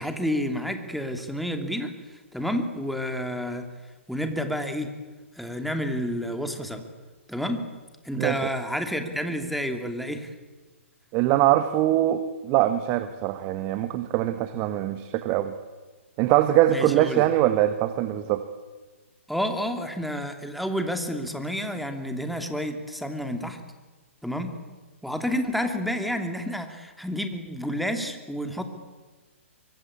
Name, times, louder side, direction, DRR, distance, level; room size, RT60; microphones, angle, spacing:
voice 1, 0.0-1.9 2.3-3.7 4.1-4.9 5.3-6.8 7.3-7.7 8.0-10.3 16.7-17.3 19.3-23.6 24.2-24.6 25.0-28.6, equal, ahead, 6 dB, 2.6 m, -30 dB
voice 2, 11.1-15.5 16.2-18.4, right 13 dB, 30° right, 11 dB, 1.4 m, -23 dB
24.5 x 23.5 x 8.6 m, 1.3 s
hypercardioid pair, 135°, 7 cm